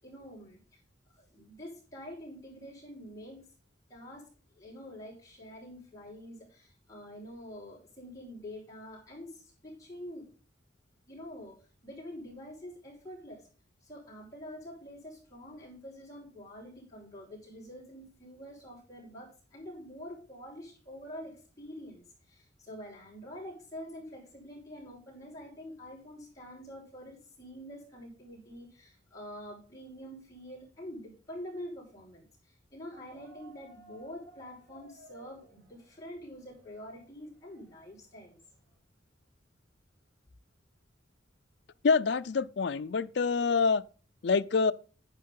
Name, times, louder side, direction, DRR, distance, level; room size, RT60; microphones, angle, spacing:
voice 1, 0.0-0.8 1.1-3.5 3.9-4.3 4.5-10.3 11.1-13.5 13.8-38.4, equal, 15° left, 5.3 m, -46 dB
sound 1, 32.9-38.8, right 2 dB, 70° right, 5.0 m, -58 dB
voice 2, 41.8-43.8 44.2-44.7, left 5 dB, 60° left, 0.4 m, -26 dB
9.9 x 9.3 x 3.8 m
head